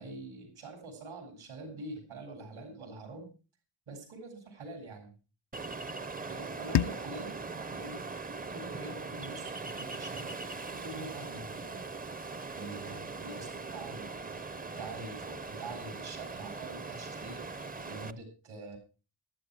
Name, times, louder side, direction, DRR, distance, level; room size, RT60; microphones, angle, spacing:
voice 1, 0.0-3.3 3.9-5.2 6.3-8.0 8.5-10.4 10.7-11.9 12.5-17.4 17.8-18.8, right 2 dB, 80° right, 3 dB, 7.3 m, -45 dB
Ocean, 5.5-18.1, right 3 dB, 20° right, 0.6 m, -41 dB
sound 1, 6.7-9.6, left 10 dB, 60° left, 0.6 m, -36 dB
14.5 x 12.0 x 4.7 m, 0.34 s
wide cardioid pair, 125°, 48 cm